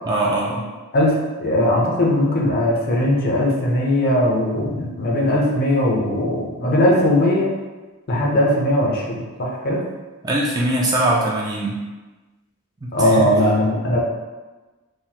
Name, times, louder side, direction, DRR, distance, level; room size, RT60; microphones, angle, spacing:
voice 1, 0.1-0.7 10.2-11.8 12.8-13.3, right 1 dB, 15° right, -3 dB, 0.3 m, -22 dB
voice 2, 0.9-7.5 8.1-9.8 12.9-14.0, left 1 dB, 45° left, -2 dB, 0.5 m, -19 dB
3.2 x 2.0 x 2.8 m, 1.2 s
head